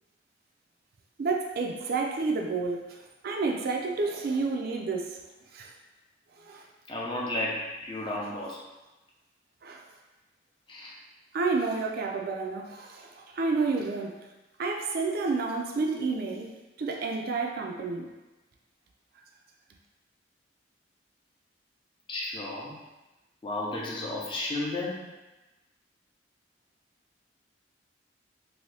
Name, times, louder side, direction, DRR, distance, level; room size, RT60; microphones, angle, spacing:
voice 1, 1.2-2.8 3.2-5.0 5.5-5.7 6.5-6.6 9.6-9.8 11.3-13.1 13.3-14.1 14.6-16.5 16.8-18.1, right 4 dB, 55° right, 1 dB, 0.4 m, -29 dB
voice 2, 6.9-8.6 10.7-11.0 22.1-22.7 23.4-25.1, left 1 dB, 30° left, -4 dB, 0.6 m, -33 dB
2.7 x 2.6 x 3.3 m, 1.1 s
head